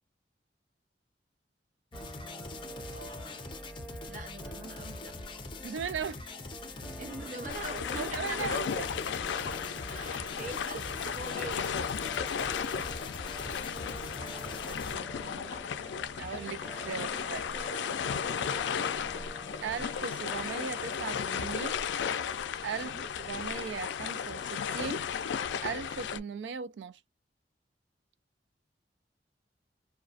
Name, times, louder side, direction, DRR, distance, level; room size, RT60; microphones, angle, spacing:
sound 1, 1.9-15.0, left 3 dB, 30° left, 0.5 m, -44 dB
sound 2, 1.9-21.5, right 1 dB, 5° left, 1.0 m, -48 dB
voice 1, 2.9-3.4 4.1-5.2 7.0-8.7 9.9-11.7 15.2-15.6 16.9-18.1 18.7-18.9 22.7-23.0, right 3 dB, 45° right, 0.9 m, -44 dB
voice 2, 5.6-6.4 6.8-6.9 7.9-8.9 9.6-9.8 14.7-15.8 16.1-17.5 19.6-21.8 22.6-22.9 23.2-25.1 25.6-27.0, right 6 dB, 90° right, 0.3 m, -38 dB
sound 3, 7.5-26.2, left 7 dB, 90° left, 0.3 m, -35 dB
2.4 x 2.2 x 2.4 m
head